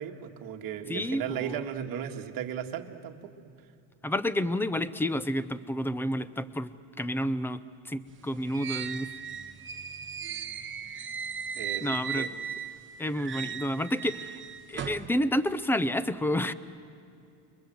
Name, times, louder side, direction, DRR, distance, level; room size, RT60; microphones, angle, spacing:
voice 1, 0.0-3.3 11.6-12.3, right 9 dB, 45° right, 3 dB, 1.9 m, -36 dB
voice 2, 0.9-1.6 4.0-6.7 7.0-7.6 7.9-9.1 11.8-12.3 13.0-14.4 14.7-16.5, left 1 dB, 5° left, 15 dB, 0.5 m, -29 dB
sound 1, 8.1-12.8 13.1-15.1, right 7 dB, 25° right, 1.3 m, -37 dB
29.0 x 22.5 x 7.9 m, 2.6 s
cardioid pair, 150°, 45 cm